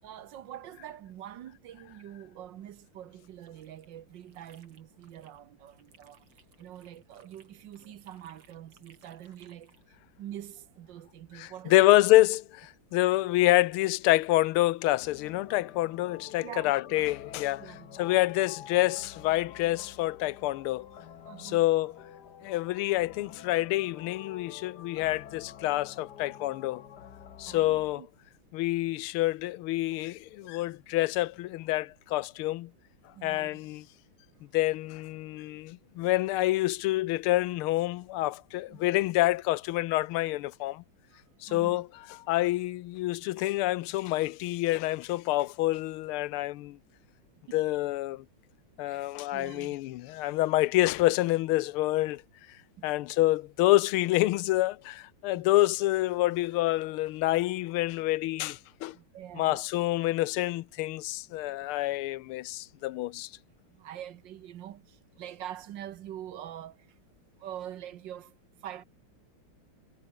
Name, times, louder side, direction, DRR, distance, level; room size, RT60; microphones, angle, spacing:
voice 1, 0.0-6.2 6.6-9.7 10.2-11.9 16.4-17.0 17.6-18.2 21.2-21.7 27.5-28.1 30.4-30.5 33.1-33.6 38.7-38.8 41.1-41.2 41.5-41.8 47.5-47.6 48.8-49.7 52.8-52.9 55.3-55.4 57.3-57.4 58.9-59.6 63.7-67.0 67.4-68.8, right 11 dB, 65° right, 1.4 m, -45 dB
sound 1, 3.2-5.4 5.7-9.9, right 6 dB, 85° right, 3.5 m, -63 dB
voice 2, 11.4-17.7 18.0-20.9 21.4-21.9 22.4-26.8 27.4-28.0 28.5-32.7 33.2-33.8 34.5-40.8 41.4-41.9 42.3-46.8 47.5-48.2 48.8-52.2 52.8-59.0 59.4-63.3, left 17 dB, 85° left, 1.5 m, -27 dB
sound 2, 15.0-28.0, left 8 dB, 55° left, 1.7 m, -49 dB
omnidirectional pair, 2.3 m